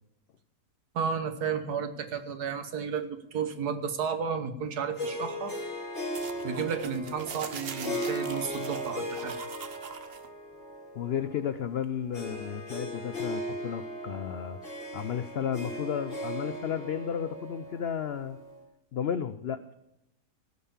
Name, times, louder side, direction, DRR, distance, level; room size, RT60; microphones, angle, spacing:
voice 1, 0.9-5.6 6.4-9.4, right 6 dB, 75° right, 8 dB, 1.6 m, -32 dB
Harp, 5.0-18.6, equal, 45° left, 4.0 m, -37 dB
sound 1, 6.1-10.3, right 7 dB, 50° right, 0.8 m, -43 dB
voice 2, 10.9-14.6 14.9-18.4 18.9-19.7, left 8 dB, 85° left, 11 dB, 0.5 m, -33 dB
16.5 x 5.6 x 7.1 m, 0.89 s
omnidirectional pair, 1.7 m